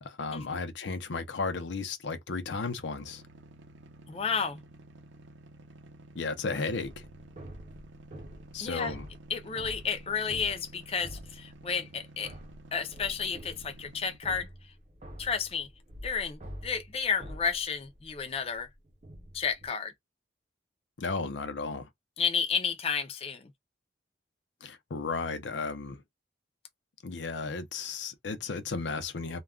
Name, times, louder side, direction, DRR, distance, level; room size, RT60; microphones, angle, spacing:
voice 1, 0.0-3.2 6.1-7.0 8.5-9.0 21.0-21.9 24.6-26.0 27.0-29.4, left 4 dB, 75° left, 0.6 m, -34 dB
sound 1, 3.0-14.2, right 2 dB, 80° right, 0.5 m, -52 dB
voice 2, 4.1-4.6 8.6-8.9 9.3-12.3 12.7-14.7 15.2-15.7 16.0-18.7 19.3-19.9 22.2-23.5, left 6 dB, 30° left, 0.4 m, -32 dB
sound 2, 6.8-12.0 12.2-19.7, equal, 40° right, 0.7 m, -47 dB
2.3 x 2.2 x 3.5 m
head